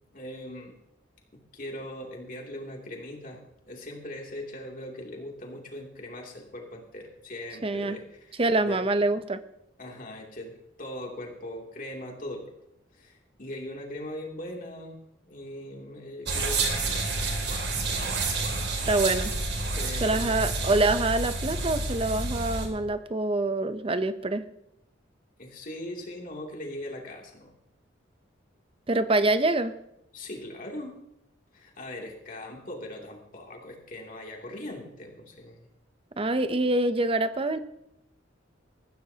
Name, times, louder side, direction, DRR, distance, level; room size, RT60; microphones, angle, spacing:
voice 1, 0.1-0.7 1.3-3.4 3.6-8.9 9.8-10.5 10.8-12.4 12.9-15.0 15.3-17.2 19.7-20.3 25.4-27.5 30.1-31.0 31.5-35.7, left 1 dB, 45° left, 0 dB, 2.8 m, -40 dB
voice 2, 7.6-8.0 8.4-9.4 18.9-19.3 20.0-24.4 28.9-29.7 36.2-37.6, right 2 dB, 30° right, 11 dB, 0.7 m, -25 dB
sound 1, 16.3-22.7, right 3 dB, 60° right, 2.7 m, -29 dB
20.0 x 14.5 x 2.9 m, 0.84 s
head